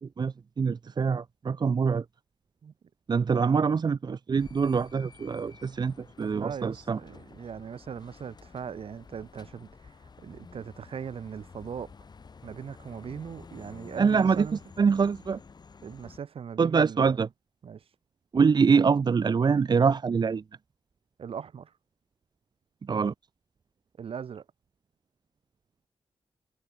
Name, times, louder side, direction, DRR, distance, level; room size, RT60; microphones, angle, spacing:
voice 1, 0.2-2.0 3.1-7.0 14.0-14.5 14.8-15.4 16.6-17.3 18.3-20.4 22.8-23.1, right 5 dB, 45° right, 1.0 m, -24 dB
voice 2, 3.3-3.7 6.2-10.0 10.2-11.9 12.4-14.6 15.8-17.2 17.6-17.8 21.2-21.7 24.0-24.4, right 7 dB, 65° right, 2.5 m, -39 dB
sound 1, 4.4-16.2, left 5 dB, 45° left, 6.8 m, -51 dB
wide cardioid pair, 125°, 10 cm